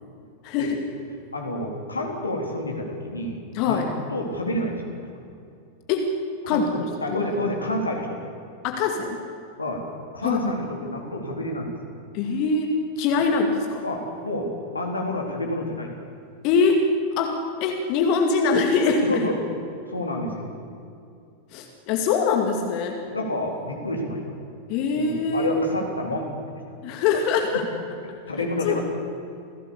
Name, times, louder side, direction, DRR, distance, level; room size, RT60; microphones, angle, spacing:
voice 1, 0.4-0.8 3.5-3.9 5.9-6.1 6.5-7.2 8.6-9.2 10.2-10.6 12.1-13.8 16.4-16.8 17.2-17.3 17.6-19.2 21.5-23.0 24.7-25.6 26.8-27.6 28.4-28.8, left 5 dB, 45° left, 3 dB, 2.3 m, -23 dB
voice 2, 1.3-3.8 4.1-5.1 6.4-8.2 9.6-9.8 10.1-11.7 13.8-14.5 14.7-15.9 19.0-19.4 19.9-20.6 23.0-24.4 24.9-26.6 27.5-27.6 28.3-28.8, left 1 dB, 80° left, 1 dB, 3.9 m, -29 dB
28.5 x 17.0 x 7.1 m, 2.5 s
figure-of-eight pair, 90°, 0 cm